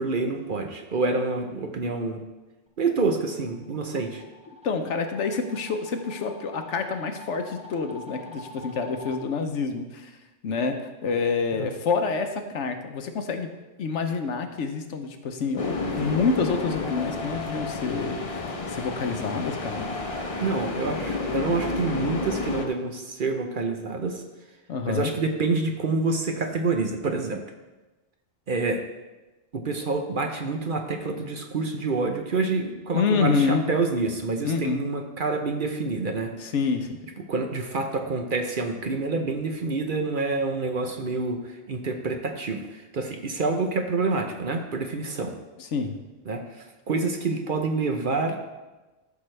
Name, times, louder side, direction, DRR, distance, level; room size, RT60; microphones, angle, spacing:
voice 1, 0.0-2.2 2.8-4.2 11.6-11.7 20.4-24.2 24.9-27.4 28.5-28.8 29.5-36.3 37.3-45.4 46.3-48.4, right 3 dB, 50° right, 4 dB, 0.8 m, -27 dB
sound 1, 3.3-9.2, left 2 dB, 5° right, 0.9 m, -45 dB
voice 2, 4.6-10.1 10.4-13.5 13.8-19.9 24.7-25.1 32.9-33.6 34.4-34.8 36.4-37.0 45.6-46.0, left 5 dB, 75° left, 7 dB, 1.1 m, -27 dB
sound 2, 15.6-22.7, left 3 dB, 35° left, 0.7 m, -31 dB
13.0 x 6.1 x 3.3 m, 1.1 s
omnidirectional pair, 1.3 m